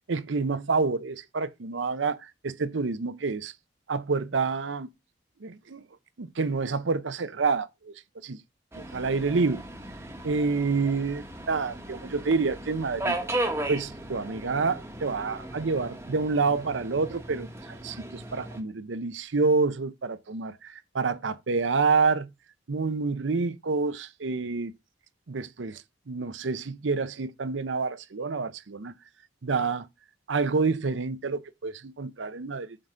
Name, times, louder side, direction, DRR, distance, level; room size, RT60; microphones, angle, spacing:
voice 1, 0.1-3.5 3.9-4.9 5.4-5.9 6.2-7.9 8.2-8.4 8.9-9.6 10.2-13.2 13.7-22.3 22.7-24.7 25.3-29.0 29.4-29.9 30.3-32.8, right 4 dB, 80° right, 0.7 m, -28 dB
Subway metro underground, 8.7-18.6, right 1 dB, 15° right, 1.1 m, -36 dB
7.6 x 4.0 x 5.0 m
head